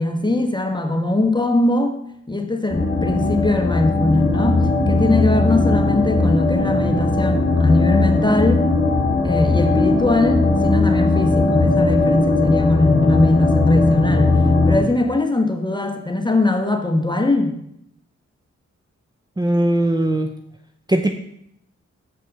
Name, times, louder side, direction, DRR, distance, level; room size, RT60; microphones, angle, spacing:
voice 1, 0.0-2.0 2.3-8.7 9.2-17.6, left 2 dB, 15° left, 3 dB, 1.2 m, -21 dB
sound 1, 2.7-14.8, left 2 dB, 40° left, 1.4 m, -18 dB
voice 2, 19.4-20.3 20.9-21.1, right 1 dB, 15° right, 5 dB, 0.6 m, -19 dB
7.5 x 5.4 x 6.5 m, 0.75 s
cardioid pair, 65°, 29 cm